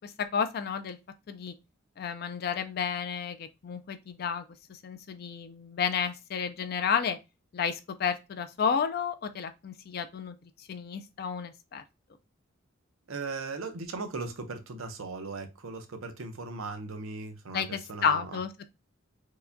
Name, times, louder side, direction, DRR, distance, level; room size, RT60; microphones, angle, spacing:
voice 1, 0.0-1.0 1.3-1.5 2.0-4.4 4.7-7.2 7.5-10.4 10.7-11.8 17.5-18.5, left 6 dB, 50° left, 0.3 m, -31 dB
voice 2, 13.1-18.4, right 3 dB, 90° right, 0.7 m, -38 dB
4.6 x 2.2 x 2.6 m
head